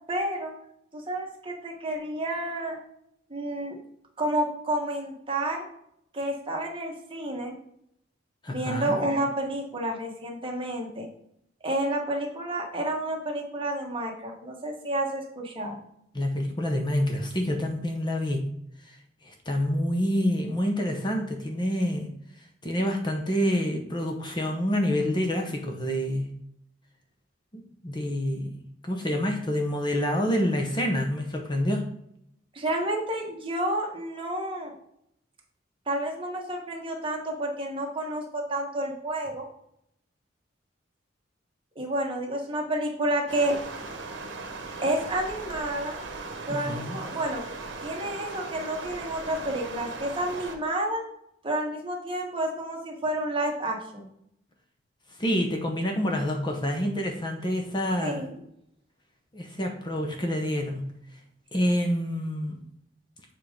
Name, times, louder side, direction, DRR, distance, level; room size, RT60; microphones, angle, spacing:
voice 1, 0.1-0.5 0.9-2.8 3.3-3.8 4.2-5.6 6.1-7.5 8.5-11.1 11.6-15.8 32.5-34.7 35.9-39.5 41.7-43.6 44.8-46.0 46.5-47.4 47.8-51.0 51.4-54.1 58.0-58.3, right 1 dB, 30° right, 0 dB, 1.5 m, -30 dB
voice 2, 8.4-9.0 16.1-18.5 18.8-19.0 19.2-22.1 22.4-26.3 27.5-28.6 28.8-31.9 46.5-47.0 55.1-58.3 59.3-60.9 61.5-62.6, equal, 25° left, 2 dB, 0.9 m, -27 dB
Stream, 43.3-50.6, right 3 dB, 70° right, 1.1 m, -38 dB
7.2 x 3.7 x 5.2 m, 0.74 s
head